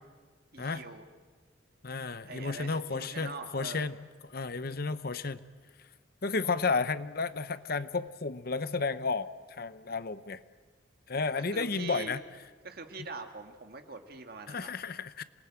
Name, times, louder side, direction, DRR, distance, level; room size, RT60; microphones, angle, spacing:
voice 1, 0.5-1.0 2.2-3.9 11.4-12.2 12.6-14.8, right 3 dB, 50° right, 5 dB, 2.0 m, -43 dB
voice 2, 1.8-4.0 4.2-5.4 6.2-10.4 11.1-12.2 14.5-15.2, left 4 dB, 50° left, 14 dB, 0.8 m, -32 dB
27.5 x 20.0 x 8.9 m, 1.5 s
head